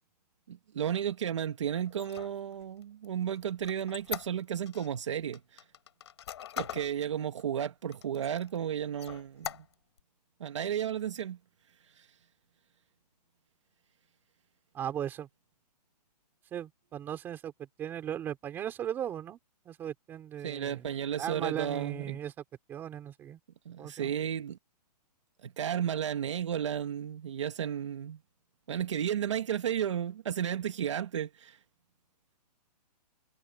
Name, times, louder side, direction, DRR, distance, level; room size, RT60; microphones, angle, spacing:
voice 1, 0.5-5.6 6.6-9.6 10.4-11.4 11.9-12.1 20.4-22.2 23.6-24.6 25.4-28.2 28.7-31.6, right 9 dB, 45° right, 1.5 m, -33 dB
Squeak, 1.9-4.9 5.3-6.9 7.4-7.5 7.9-8.6 9.0-10.0, left 9 dB, 40° left, 5.8 m, -41 dB
voice 2, 14.7-15.3 16.5-17.5 17.8-19.4 19.7-20.9 21.2-22.3 22.7-23.4 23.8-24.1, right 10 dB, 10° right, 3.6 m, -37 dB
hypercardioid pair, 180°, 21 cm